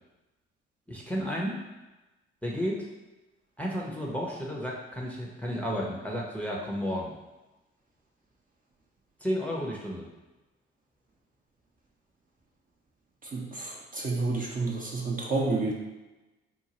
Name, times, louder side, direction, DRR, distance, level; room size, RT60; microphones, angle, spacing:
voice 1, 0.9-1.6 2.4-2.9 3.6-7.2 9.2-10.1, equal, 5° left, -3 dB, 0.8 m, -32 dB
voice 2, 13.2-15.7, right 3 dB, 25° right, -3 dB, 0.8 m, -30 dB
4.5 x 2.2 x 3.0 m, 1.1 s
figure-of-eight pair, 40°, 31 cm